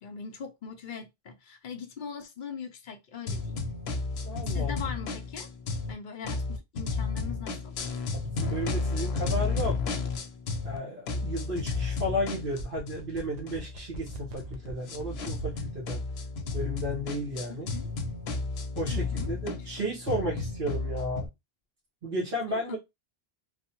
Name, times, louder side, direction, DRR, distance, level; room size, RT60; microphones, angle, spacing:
voice 1, 0.0-3.6 4.5-5.5 5.9-7.7 17.7-17.9 18.9-19.3 22.5-22.8, left 6 dB, 60° left, 0.6 m, -41 dB
sound 1, 3.3-5.9 6.2-10.8 11.1-21.3, left 4 dB, 85° left, 0.8 m, -33 dB
voice 2, 4.2-4.7 8.1-9.8 10.6-16.0 16.5-17.7 18.7-21.3 22.0-22.8, equal, 65° right, 1.4 m, -33 dB
sound 2, 12.3-15.7 16.0-16.1, right 5 dB, 50° right, 0.7 m, -41 dB
3.2 x 2.0 x 2.9 m
omnidirectional pair, 1.0 m